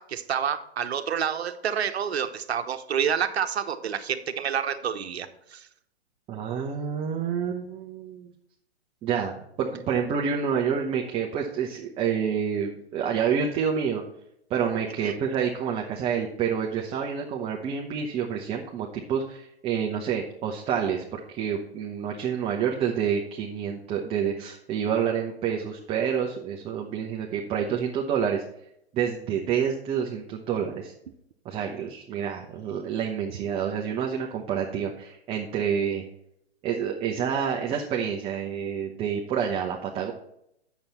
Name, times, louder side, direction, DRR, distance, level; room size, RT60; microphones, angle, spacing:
voice 1, 0.0-5.7 15.0-15.1, right 8 dB, 75° right, 9 dB, 1.0 m, -28 dB
voice 2, 6.3-8.3 9.0-14.0 14.5-28.4 28.9-30.9 31.4-36.0 36.6-40.1, right 7 dB, 20° right, 0 dB, 0.8 m, -28 dB
8.8 x 7.1 x 4.3 m, 0.77 s
hypercardioid pair, 125°, 32 cm